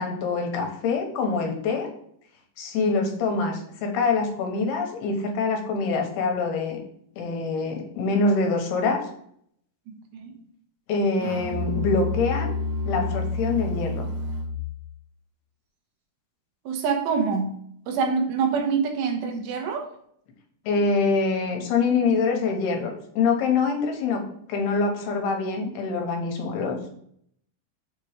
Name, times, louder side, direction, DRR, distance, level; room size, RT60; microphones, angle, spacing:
voice 1, 0.0-1.9 2.6-6.8 7.2-9.0 10.9-12.5 12.9-14.1 20.7-24.2 24.5-26.9, left 4 dB, 75° left, 3 dB, 2.8 m, -25 dB
voice 2, 9.9-10.4 16.7-17.6 17.9-19.9, right 5 dB, 85° right, 2 dB, 3.1 m, -26 dB
Musical instrument, 11.2-14.7, left 2 dB, 65° right, 2.8 m, -29 dB
7.1 x 2.9 x 4.9 m, 0.68 s
omnidirectional pair, 4.8 m